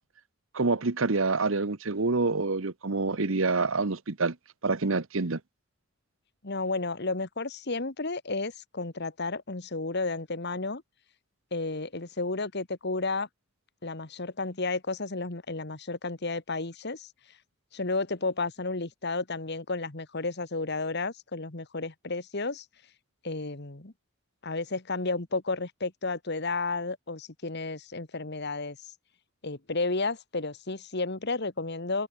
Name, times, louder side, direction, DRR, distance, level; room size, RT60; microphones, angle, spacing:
voice 1, 0.5-4.4 4.6-5.4, right 3 dB, 70° right, 1.1 m, -27 dB
voice 2, 6.4-10.8 11.5-13.3 13.8-17.1 17.7-22.6 23.2-23.9 24.4-28.8 29.4-32.1, left 3 dB, 50° left, 1.7 m, -32 dB
head